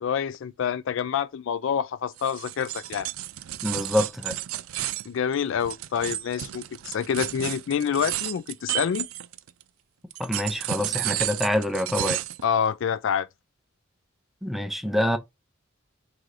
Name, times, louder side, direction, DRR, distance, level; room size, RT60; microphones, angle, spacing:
voice 1, 0.0-3.1 5.1-9.1 12.4-13.3, left 7 dB, 65° left, 0.3 m, -27 dB
sound 1, 2.2-9.6 10.1-12.4, right 14 dB, 80° right, 0.4 m, -32 dB
voice 2, 3.6-4.3 10.2-12.2 14.4-15.2, left 1 dB, ahead, 0.5 m, -26 dB
3.8 x 2.7 x 4.7 m
head